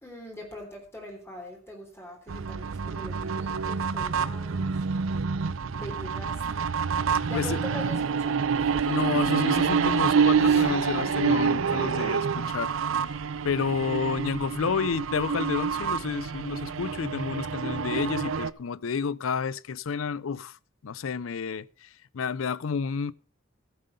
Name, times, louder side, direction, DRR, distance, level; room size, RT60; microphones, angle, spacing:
voice 1, 0.0-4.7 5.7-6.7 7.1-9.0 10.5-10.6, left 1 dB, 15° left, 3.4 m, -42 dB
sound 1, 2.3-18.5, right 6 dB, 75° right, 0.5 m, -27 dB
voice 2, 8.9-12.8 13.0-13.1 13.4-20.6 20.8-23.1, left 5 dB, 80° left, 0.5 m, -30 dB
15.0 x 7.7 x 5.4 m
head